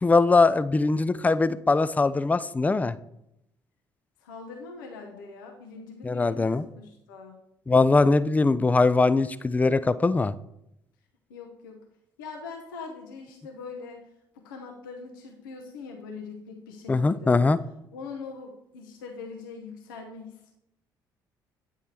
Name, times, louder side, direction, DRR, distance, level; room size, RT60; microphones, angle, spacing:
voice 1, 0.0-2.9 6.0-6.6 7.7-10.3 16.9-17.6, left 3 dB, 15° left, 15 dB, 0.4 m, -21 dB
voice 2, 4.2-7.4 11.3-11.8 12.2-14.0 14.3-17.4 17.9-20.5, left 4 dB, 75° left, 1 dB, 0.8 m, -42 dB
9.2 x 3.5 x 4.4 m, 0.81 s
figure-of-eight pair, 50°, 11 cm